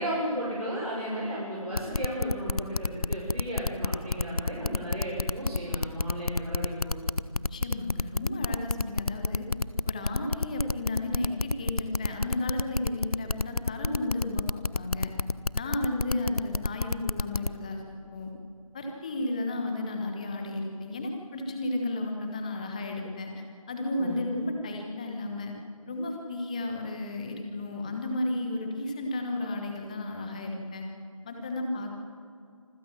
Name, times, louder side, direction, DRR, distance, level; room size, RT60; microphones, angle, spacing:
voice 1, 0.0-7.0 24.0-24.2, equal, 80° right, -6 dB, 6.6 m, -34 dB
sound 1, 1.7-17.5, left 3 dB, 85° left, 0.7 m, -28 dB
voice 2, 7.4-9.5 9.8-15.1 15.5-17.8 18.1-18.3 18.7-25.5 25.9-30.9 31.2-31.9, left 2 dB, 10° left, 3 dB, 1.2 m, -33 dB
26.0 x 15.5 x 7.4 m, 2.4 s
figure-of-eight pair, 160°, 19 cm